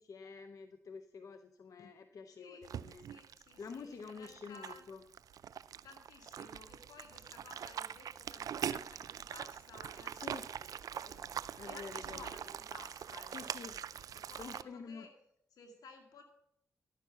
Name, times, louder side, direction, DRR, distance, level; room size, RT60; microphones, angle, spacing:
voice 1, 0.0-3.0 3.6-5.0 10.1-10.5 11.6-12.3 13.3-13.8 14.4-15.1, left 5 dB, 65° left, 8 dB, 0.7 m, -48 dB
voice 2, 2.3-2.6 3.1-4.8 5.8-13.4 13.7-15.1 15.5-16.2, left 4 dB, 85° left, 5 dB, 2.0 m, -56 dB
sound 1, 2.6-14.6, right 9 dB, 75° right, 0.4 m, -43 dB
11.5 x 9.4 x 5.6 m, 0.73 s
cardioid pair, 55°, 6 cm